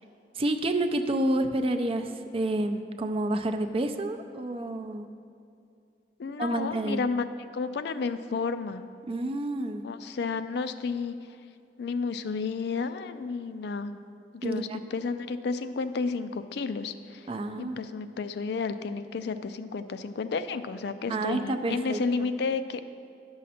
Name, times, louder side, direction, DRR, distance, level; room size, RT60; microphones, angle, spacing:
voice 1, 0.4-5.1 6.4-7.0 9.1-9.8 14.4-14.8 17.3-17.8 21.1-22.3, right 1 dB, 35° right, 7 dB, 0.5 m, -29 dB
voice 2, 6.2-7.2 7.5-8.8 9.8-11.2 11.8-14.0 14.3-17.3 17.6-22.8, left 4 dB, 65° left, 11 dB, 0.4 m, -31 dB
11.0 x 6.4 x 4.2 m, 2.5 s
head